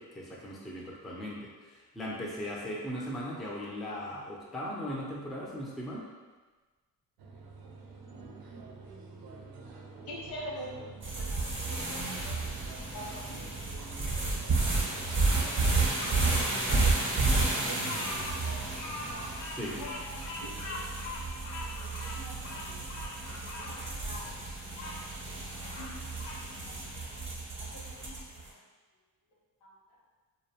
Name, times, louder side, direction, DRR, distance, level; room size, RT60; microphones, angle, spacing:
voice 1, 0.0-6.0 19.5-19.8, equal, ahead, -4 dB, 0.3 m, -38 dB
sound 1, 7.2-19.4, right 4 dB, 80° right, 0.5 m, -47 dB
voice 2, 9.9-10.8 11.1-11.4 11.7-12.6 12.9-13.4 13.9-14.1 14.6-14.7 15.1-15.5 16.2-16.7 17.7-17.9 18.3-18.7 19.5-20.3 20.6-20.9 21.6-22.9 23.4-23.8 24.0-24.4 25.3-26.0 26.7-26.8 27.6-28.5 29.6-29.7, equal, 75° left, -4 dB, 0.9 m, -46 dB
sound 2, 11.0-28.4, right 3 dB, 35° right, 0.6 m, -32 dB
Bird vocalization bird call bird song, 16.0-25.0 25.4-26.4, left 2 dB, 55° left, 0.5 m, -43 dB
2.5 x 2.1 x 2.7 m, 1.3 s
cardioid pair, 110°, 36 cm